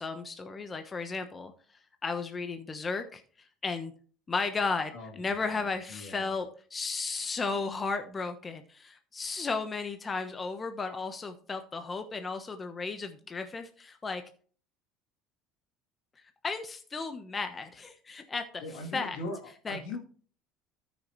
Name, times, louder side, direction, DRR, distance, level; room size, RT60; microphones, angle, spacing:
voice 1, 0.0-1.5 2.0-3.9 4.3-14.2 16.4-18.6 18.9-19.2 19.7-20.0, left 4 dB, 25° left, 7 dB, 1.1 m, -34 dB
voice 2, 4.9-6.3 18.6-19.4 19.7-20.0, left 2 dB, 80° left, 0 dB, 3.2 m, -40 dB
13.5 x 6.4 x 3.2 m, 0.43 s
supercardioid pair, 90°, 0 cm